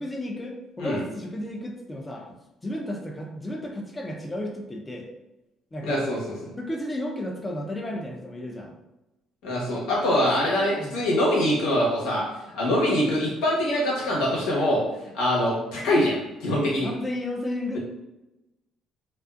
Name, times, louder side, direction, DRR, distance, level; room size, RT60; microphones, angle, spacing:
voice 1, 0.0-2.3 2.6-5.1 5.7-6.0 6.6-8.7 10.0-11.0 16.8-17.8, left 1 dB, 20° left, 1 dB, 0.5 m, -33 dB
voice 2, 5.8-6.2 9.4-12.3 12.5-14.8 15.1-16.9, left 1 dB, 85° left, -5 dB, 1.0 m, -23 dB
2.4 x 2.4 x 2.4 m, 0.98 s
supercardioid pair, 85°, 0 cm